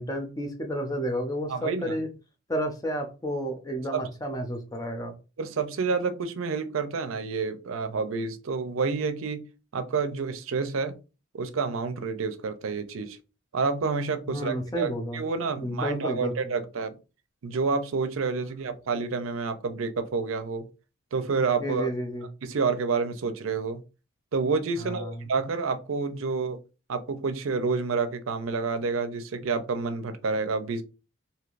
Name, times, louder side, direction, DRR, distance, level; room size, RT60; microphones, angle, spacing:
voice 1, 0.0-2.1 2.5-5.1 14.2-15.2 15.6-16.5 21.6-22.3 24.8-25.1, equal, 20° left, 0.6 m, -31 dB
voice 2, 1.5-2.0 3.9-4.1 5.4-9.4 9.7-10.9 11.3-13.2 13.5-17.0 17.4-20.7 21.1-21.9 22.4-23.8 24.3-26.6 26.9-30.8, right 4 dB, 80° right, 0.5 m, -29 dB
3.2 x 2.8 x 2.4 m
head